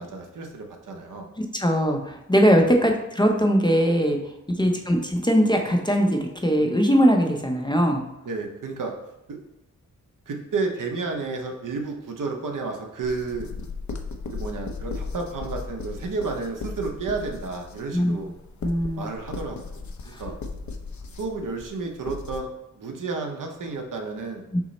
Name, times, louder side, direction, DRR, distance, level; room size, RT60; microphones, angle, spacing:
voice 1, 0.0-1.3 2.7-2.8 4.5-4.8 8.2-8.9 9.3-9.4 10.3-13.5 14.3-18.3 19.0-20.4 21.2-22.5 22.7-24.4, right 4 dB, 75° right, 3 dB, 0.8 m, -31 dB
voice 2, 1.4-4.2 4.6-8.0 17.9-18.1 18.6-19.1 20.1-20.2 24.5-24.6, equal, 15° left, 2 dB, 0.5 m, -21 dB
sound 1, 13.0-22.4, left 4 dB, 60° left, 0.5 m, -36 dB
5.9 x 2.0 x 4.0 m, 0.89 s
wide cardioid pair, 115°, 32 cm